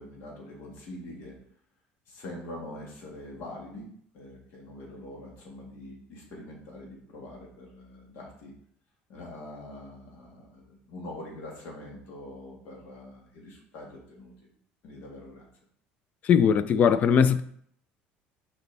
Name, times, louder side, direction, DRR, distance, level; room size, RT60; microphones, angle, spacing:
voice 1, 0.0-1.4 2.1-8.5 9.1-14.5 14.8-15.5, left 1 dB, 65° left, 1.8 m, -44 dB
voice 2, 16.2-17.4, left 7 dB, 40° left, 0.4 m, -20 dB
6.5 x 4.3 x 3.4 m
cardioid pair, 150°, 4 cm